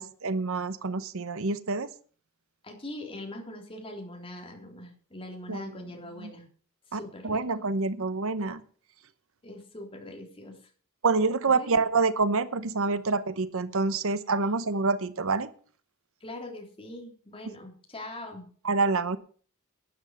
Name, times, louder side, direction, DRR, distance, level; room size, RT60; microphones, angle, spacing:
voice 1, 0.0-1.9 5.5-5.8 6.2-6.3 6.9-8.6 11.0-15.5 18.6-19.2, right 4 dB, 65° right, 14 dB, 0.9 m, -27 dB
voice 2, 2.6-6.5 6.9-7.5 9.4-10.6 11.5-11.8 14.4-14.6 16.2-18.5, left 1 dB, 25° left, 2 dB, 3.6 m, -42 dB
12.0 x 9.9 x 6.5 m, 0.44 s
head